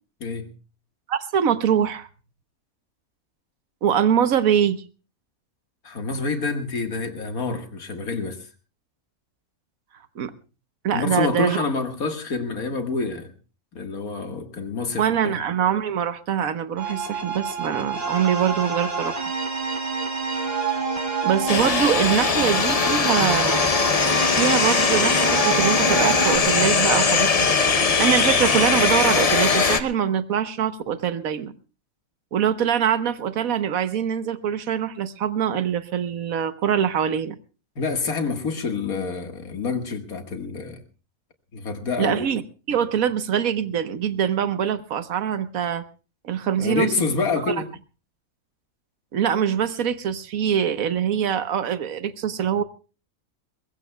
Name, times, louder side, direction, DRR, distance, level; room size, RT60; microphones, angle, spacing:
voice 1, 1.1-2.1 3.8-4.8 10.2-10.3 10.8-11.6 15.0-19.2 21.2-23.7 24.3-31.5 32.3-37.4 42.0-42.4 42.7-45.8 46.2-46.9 47.5-47.6 49.1-52.6, right 8 dB, 75° right, 12 dB, 1.4 m, -23 dB
voice 2, 5.8-8.5 10.9-13.3 13.8-15.4 37.8-40.8 41.5-42.3 46.6-47.7, left 4 dB, 85° left, 6 dB, 2.2 m, -27 dB
sound 1, 16.8-26.4, right 5 dB, 45° right, 3.4 m, -28 dB
sound 2, 21.5-29.8, left 5 dB, 35° left, 0.7 m, -20 dB
22.5 x 21.0 x 2.3 m, 0.34 s
omnidirectional pair, 1.5 m